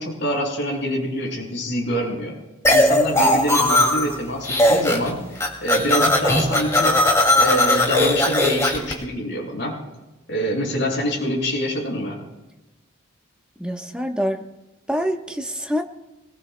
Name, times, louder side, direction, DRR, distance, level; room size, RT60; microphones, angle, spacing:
voice 1, 0.0-2.3 2.7-7.0 7.4-9.8 10.3-12.2, equal, 55° left, -2 dB, 5.9 m, -25 dB
sound 1, 2.6-4.1 4.4-5.1 5.3-8.9, left 1 dB, 15° left, 2.4 m, -18 dB
voice 2, 13.6-14.4 14.9-15.8, equal, 5° right, 2 dB, 1.0 m, -25 dB
26.0 x 20.5 x 2.2 m, 1.0 s
head